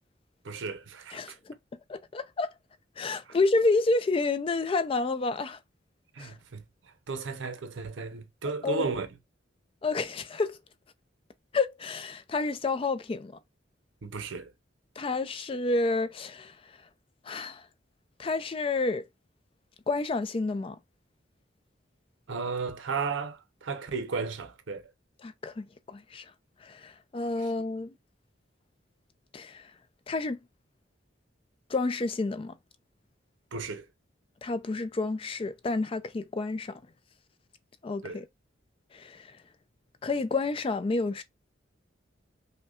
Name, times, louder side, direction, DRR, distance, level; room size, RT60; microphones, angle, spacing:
voice 1, 0.4-1.2 6.1-6.6 7.1-9.1 14.0-14.5 22.3-24.8 27.4-27.5 33.5-33.9 38.0-38.2, right 4 dB, 85° right, 0.8 m, -34 dB
voice 2, 1.1-1.6 1.9-2.5 3.0-5.6 6.2-6.3 8.6-8.9 9.8-10.6 11.5-13.4 15.0-16.5 17.3-17.6 18.2-19.0 19.9-20.8 25.2-26.3 26.6-27.9 29.3-29.6 30.1-30.4 31.7-32.6 34.4-36.8 37.8-38.3 38.9-39.3 40.0-41.2, left 3 dB, 30° left, 0.3 m, -29 dB
5.3 x 2.2 x 2.4 m
head